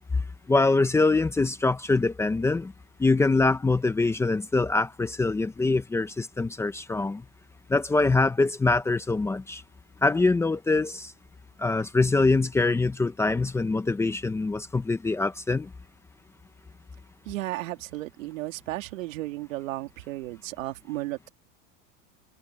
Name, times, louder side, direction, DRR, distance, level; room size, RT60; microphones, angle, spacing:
voice 1, 0.5-2.7 3.0-7.2 7.7-9.6 10.0-11.1 11.6-15.7, left 3 dB, 5° left, 0.8 m, -24 dB
voice 2, 17.2-21.3, right 17 dB, 85° right, 3.0 m, -34 dB
supercardioid pair, 160°, 39 cm